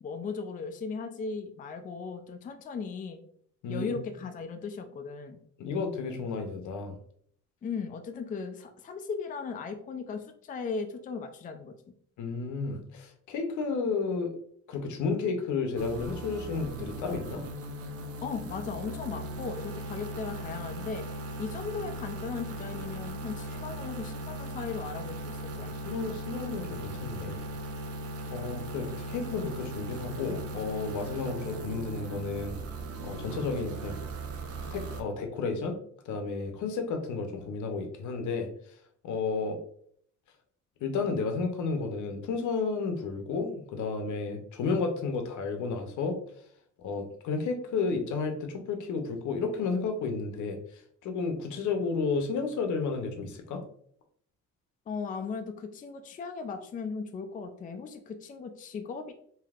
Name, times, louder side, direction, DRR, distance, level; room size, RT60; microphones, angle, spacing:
voice 1, 0.0-3.2 3.7-5.4 7.6-11.7 18.2-21.1 21.4-25.7 54.9-59.1, left 5 dB, 30° left, 6 dB, 0.4 m, -37 dB
voice 2, 5.6-7.0 12.2-14.3 14.7-17.4 25.8-27.4 28.3-32.6 33.0-34.0 34.7-35.8 36.1-38.5 39.0-39.6 40.8-46.2 46.8-53.6, left 4 dB, 75° left, 5 dB, 0.7 m, -32 dB
sound 1, 15.8-35.0, right 1 dB, 50° right, 0.5 m, -38 dB
3.3 x 2.8 x 2.4 m, 0.62 s
cardioid pair, 90°, 30 cm